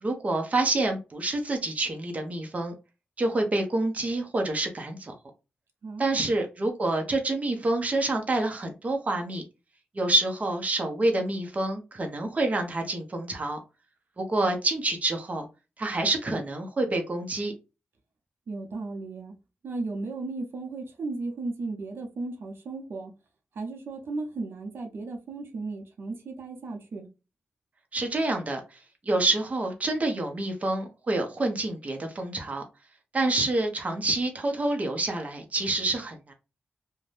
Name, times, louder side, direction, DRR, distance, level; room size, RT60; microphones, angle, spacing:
voice 1, 0.0-2.7 3.2-5.1 6.0-9.4 9.9-13.6 14.2-15.5 15.8-17.5 27.9-28.6 29.1-32.6 33.1-36.3, right 2 dB, 35° right, 0.7 m, -27 dB
voice 2, 5.8-6.2 18.5-19.3 19.6-23.1 23.6-27.1, right 3 dB, 80° right, 0.6 m, -35 dB
2.5 x 2.1 x 3.2 m
wide cardioid pair, 90°, 4 cm